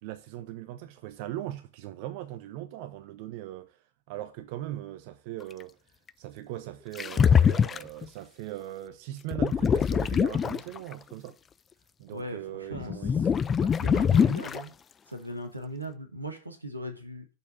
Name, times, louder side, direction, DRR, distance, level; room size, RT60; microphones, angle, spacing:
voice 1, 0.0-3.8 4.1-5.8 6.2-11.4 12.0-13.4 13.8-14.0, right 14 dB, 45° right, 0.7 m, -39 dB
sound 1, 7.0-8.1 9.3-10.9 12.7-14.6, left 7 dB, 20° left, 0.3 m, -23 dB
voice 2, 12.1-13.0 13.6-14.7 15.1-17.3, equal, 85° right, 1.3 m, -39 dB
6.8 x 4.7 x 6.7 m
figure-of-eight pair, 90°, 0 cm